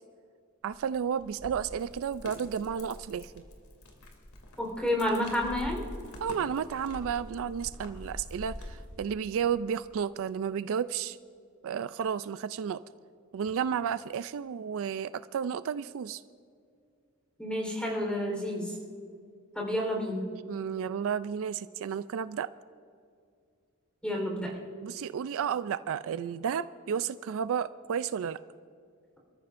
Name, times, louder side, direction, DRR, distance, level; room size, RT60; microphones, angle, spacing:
sound 1, 0.6-9.0, left 1 dB, 70° left, 2.5 m, -45 dB
voice 1, 0.6-3.4 6.2-11.2 11.6-12.8 13.3-16.2 20.5-22.5 24.8-28.4, right 7 dB, 65° right, 14 dB, 0.4 m, -32 dB
voice 2, 4.6-5.8 17.4-18.8 19.5-20.3 24.0-24.6, left 1 dB, 5° left, 0 dB, 3.9 m, -30 dB
28.0 x 14.0 x 2.6 m, 2.3 s
head